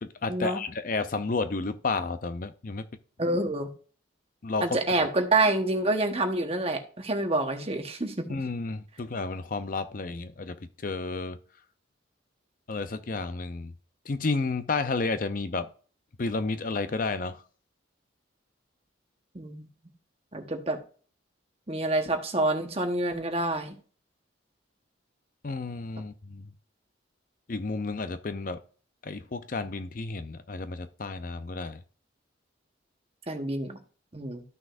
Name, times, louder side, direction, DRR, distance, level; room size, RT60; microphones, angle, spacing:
voice 1, 0.0-2.9 4.4-4.8 8.3-11.4 12.7-13.7 14.1-15.7 16.2-17.4 25.4-26.5 27.5-28.6 29.0-31.8, left 3 dB, 45° left, 0.5 m, -31 dB
voice 2, 3.2-3.7 4.6-8.3 19.3-19.7 20.3-20.8 21.7-23.8 33.3-33.8 34.1-34.4, right 2 dB, 30° right, 1.1 m, -27 dB
13.5 x 6.1 x 2.5 m
head